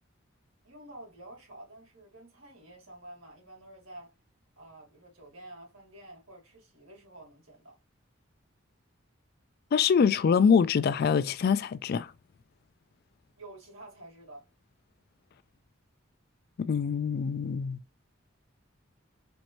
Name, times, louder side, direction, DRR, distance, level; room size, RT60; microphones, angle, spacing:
voice 1, 0.6-4.1 4.6-7.8 13.4-14.5, right 1 dB, 80° right, 2.5 m, -49 dB
voice 2, 9.7-12.1 16.6-17.8, left 6 dB, 50° left, 0.3 m, -24 dB
4.4 x 2.6 x 2.9 m
head